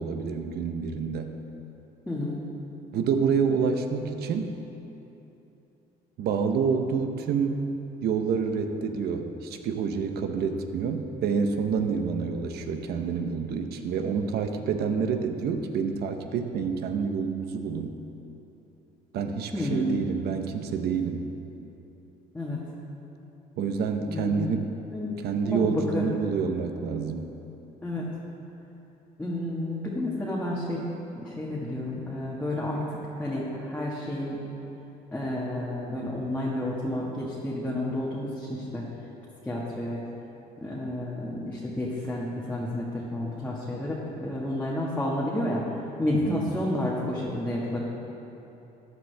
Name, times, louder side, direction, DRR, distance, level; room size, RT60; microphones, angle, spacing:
voice 1, 0.0-1.4 2.9-4.5 6.2-7.6 8.0-17.9 19.1-21.2 23.6-24.8 25.2-27.3 46.1-46.4, right 6 dB, 70° right, 6 dB, 1.0 m, -28 dB
voice 2, 2.1-2.4 19.5-20.0 22.3-22.6 24.1-24.5 24.9-25.1 25.5-26.1 27.8-28.1 29.2-30.9 31.1-32.8 33.2-34.4 35.1-38.9 39.4-40.0 40.6-45.7 46.0-47.8, left 1 dB, 10° left, -6 dB, 1.6 m, -30 dB
14.0 x 10.5 x 3.4 m, 3.0 s
cardioid pair, 110°, 17 cm